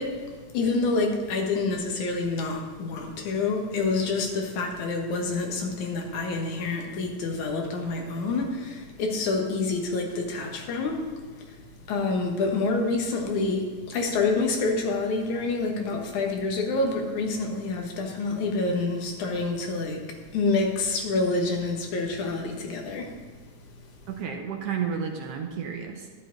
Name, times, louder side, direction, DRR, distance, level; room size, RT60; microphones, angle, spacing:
voice 1, 0.0-24.0, left 3 dB, 85° left, 2 dB, 2.8 m, -28 dB
voice 2, 24.1-26.1, right 7 dB, 65° right, 3 dB, 1.7 m, -31 dB
12.0 x 10.5 x 3.9 m, 1.5 s
omnidirectional pair, 3.3 m